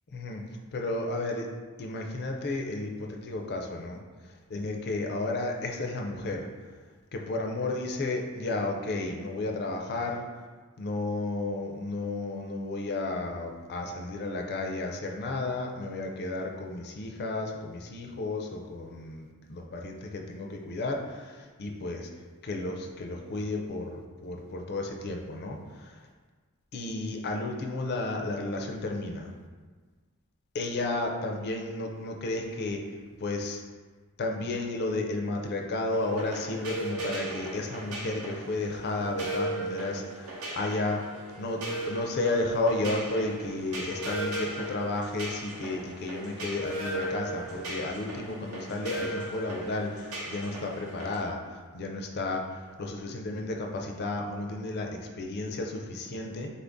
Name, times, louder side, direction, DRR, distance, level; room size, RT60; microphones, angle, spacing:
voice 1, 0.7-1.5 1.8-6.5 7.1-10.2 10.8-22.1 22.4-26.0 26.7-29.3 30.5-32.8 33.2-33.6 34.2-56.5, left 2 dB, 45° left, 2 dB, 0.4 m, -33 dB
sound 1, 35.9-51.2, right 1 dB, 70° right, 0.7 m, -37 dB
4.1 x 2.6 x 3.5 m, 1.4 s
head